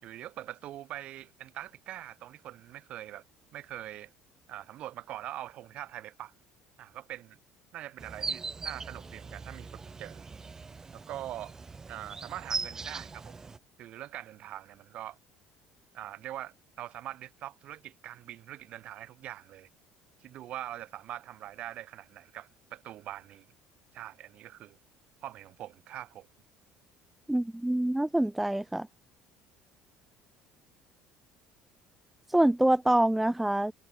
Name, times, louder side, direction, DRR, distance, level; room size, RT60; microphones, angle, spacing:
voice 1, 0.0-3.2 3.5-4.1 4.5-6.3 6.8-7.4 7.7-10.2 10.9-11.5 11.9-13.4 13.8-15.2 15.9-19.7 20.2-23.5 23.9-24.8 25.2-26.3, right 13 dB, 60° right, 4.2 m, -43 dB
sound 1, 8.0-13.6, right 4 dB, 20° right, 1.9 m, -40 dB
voice 2, 27.3-28.9 32.3-33.7, right 1 dB, 5° right, 0.5 m, -25 dB
cardioid pair, 110°, 2 cm